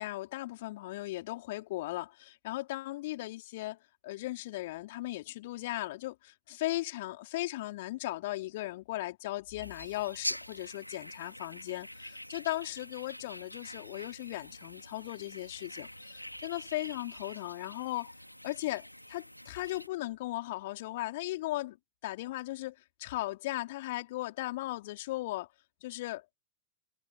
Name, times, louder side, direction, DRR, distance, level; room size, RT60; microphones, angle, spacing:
voice 1, 0.0-3.8 4.0-18.1 18.4-21.8 22.0-25.5 25.8-26.2, left 18 dB, 55° left, 3.4 m, -37 dB
sound 1, 9.6-19.9, left 1 dB, 90° left, 2.3 m, -45 dB
figure-of-eight pair, 90°, 0 cm